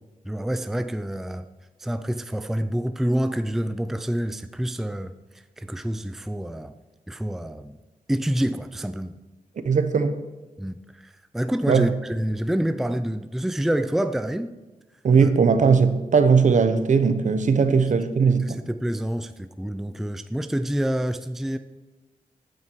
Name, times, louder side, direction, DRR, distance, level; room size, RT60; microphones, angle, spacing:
voice 1, 0.2-1.5 1.8-5.1 5.6-6.7 7.1-7.8 8.1-9.1 10.6-14.5 15.2-15.3 17.7-17.8 18.3-21.6, right 1 dB, ahead, 0.4 m, -27 dB
voice 2, 9.6-10.2 11.7-11.9 15.0-18.6, right 5 dB, 60° right, 1.0 m, -19 dB
15.5 x 9.4 x 4.7 m
wide cardioid pair, 150°, 14 cm